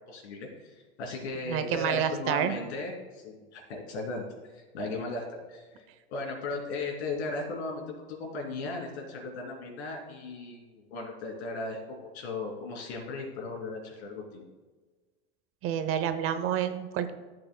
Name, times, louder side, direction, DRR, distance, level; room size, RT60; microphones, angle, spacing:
voice 1, 0.1-4.2 4.5-5.8 6.1-14.4, left 3 dB, 85° left, 0 dB, 2.9 m, -36 dB
voice 2, 1.5-2.5 15.6-17.1, right 9 dB, 40° right, 10 dB, 0.7 m, -29 dB
13.5 x 7.8 x 2.2 m, 1.3 s
supercardioid pair, 125°, 32 cm